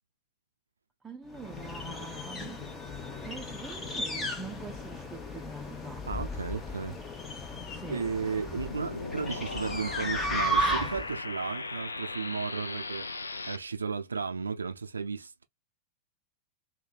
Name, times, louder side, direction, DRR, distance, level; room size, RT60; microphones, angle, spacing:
voice 1, 1.0-2.7 3.2-6.1 7.7-8.1, right 3 dB, 15° right, 0.5 m, -44 dB
sound 1, 1.3-11.2, equal, 20° left, 0.9 m, -35 dB
voice 2, 6.0-7.0 7.9-13.1 13.5-15.4, right 5 dB, 80° right, 0.4 m, -34 dB
sound 2, 8.6-13.6, left 3 dB, 85° left, 0.4 m, -38 dB
3.3 x 2.2 x 2.4 m
figure-of-eight pair, 95°, 0 cm